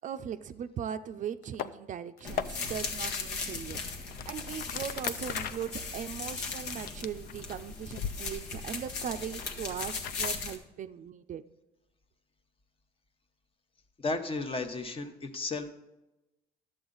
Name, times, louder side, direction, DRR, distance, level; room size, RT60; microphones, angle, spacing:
voice 1, 0.0-11.4, right 8 dB, 50° right, 11 dB, 0.5 m, -39 dB
sound 1, 1.4-1.7 2.2-2.5 3.1-3.2 3.7-7.5 7.9-8.1 8.5-10.4, left 9 dB, 60° left, 0.5 m, -39 dB
sound 2, 2.2-10.6, left 4 dB, 80° left, 1.4 m, -38 dB
voice 2, 14.0-15.7, left 3 dB, 30° left, 7 dB, 1.0 m, -34 dB
11.0 x 7.7 x 3.9 m, 1.0 s
cardioid pair, 110°, 17 cm